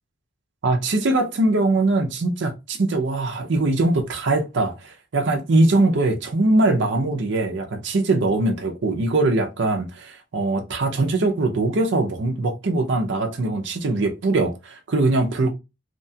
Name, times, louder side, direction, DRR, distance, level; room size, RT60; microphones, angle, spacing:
voice 1, 0.6-15.5, right 2 dB, 60° right, 0.5 m, -21 dB
2.8 x 2.2 x 2.7 m
head